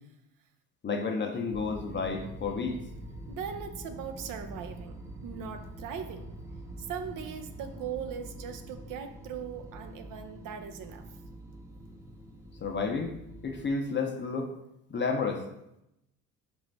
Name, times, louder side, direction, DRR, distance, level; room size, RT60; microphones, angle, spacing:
voice 1, 0.8-2.8 12.6-13.1 13.4-14.5 14.9-15.4, left 4 dB, 30° left, 4 dB, 0.6 m, -31 dB
sound 1, 1.5-13.7, right 1 dB, 5° right, 0.8 m, -45 dB
voice 2, 3.3-6.3 6.8-11.0, right 7 dB, 50° right, 6 dB, 0.6 m, -39 dB
4.9 x 2.6 x 3.2 m, 0.85 s
hypercardioid pair, 70°, 40 cm